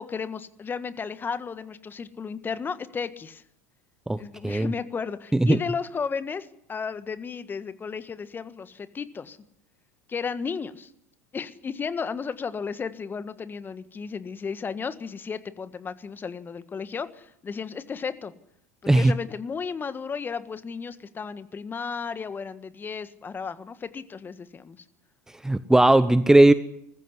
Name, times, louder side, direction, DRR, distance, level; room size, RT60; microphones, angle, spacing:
voice 1, 0.0-3.4 4.2-9.4 10.1-10.9 11.3-18.3 18.9-24.8, left 5 dB, 25° left, 13 dB, 1.6 m, -34 dB
voice 2, 25.4-26.5, right 1 dB, 5° right, 15 dB, 0.8 m, -17 dB
21.0 x 15.0 x 9.7 m, 0.73 s
hypercardioid pair, 80°, 8 cm